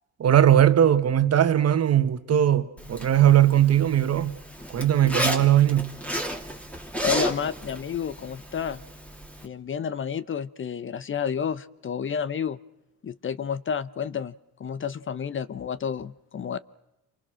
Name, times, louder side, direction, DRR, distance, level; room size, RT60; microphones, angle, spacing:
voice 1, 0.2-4.4 4.7-6.0, right 11 dB, 55° right, 1.6 m, -19 dB
Zipper (clothing), 2.8-9.5, equal, 5° left, 2.9 m, -33 dB
voice 2, 7.0-8.8 9.4-12.6 13.0-14.3 14.6-16.6, left 7 dB, 40° left, 0.9 m, -30 dB
28.5 x 24.5 x 6.3 m
cardioid pair, 90°, 30 cm